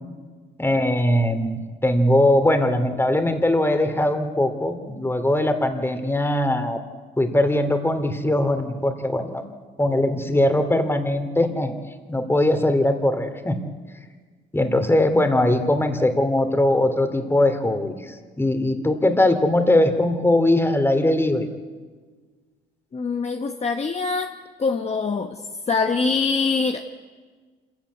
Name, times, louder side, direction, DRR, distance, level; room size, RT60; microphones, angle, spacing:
voice 1, 0.6-6.8 7.2-9.5 9.8-11.8 12.1-13.6 14.5-21.5, left 1 dB, 10° left, 7 dB, 2.5 m, -21 dB
voice 2, 22.9-24.3 24.6-25.4 25.7-26.8, left 4 dB, 35° left, 5 dB, 1.2 m, -24 dB
26.0 x 14.5 x 9.4 m, 1.5 s
cardioid pair, 90°, 20 cm